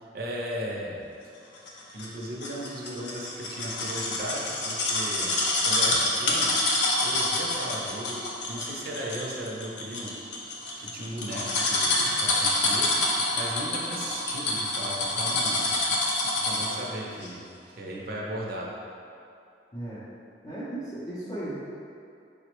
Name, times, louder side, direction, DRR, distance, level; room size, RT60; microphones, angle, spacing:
voice 1, 0.1-1.0 1.9-6.6 7.0-10.1 10.8-12.9 13.4-15.5 16.3-18.7, equal, 55° right, -3 dB, 0.5 m, -36 dB
sound 1, 1.7-16.8 17.2-17.3, left 2 dB, 80° left, 0.5 m, -27 dB
voice 2, 19.7-20.1 20.4-21.6, right 1 dB, 25° left, -11 dB, 0.5 m, -35 dB
5.1 x 2.1 x 2.9 m, 2.5 s
head